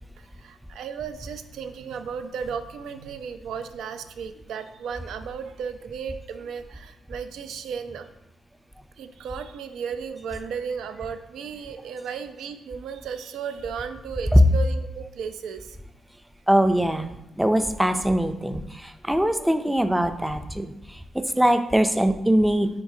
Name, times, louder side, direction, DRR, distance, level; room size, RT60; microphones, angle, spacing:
voice 1, 0.2-8.1 9.0-15.8, right 6 dB, 90° right, 9 dB, 0.5 m, -35 dB
voice 2, 16.5-22.7, right 1 dB, 5° right, 8 dB, 0.4 m, -22 dB
9.6 x 3.8 x 2.7 m, 0.87 s
cardioid pair, 115°, 0 cm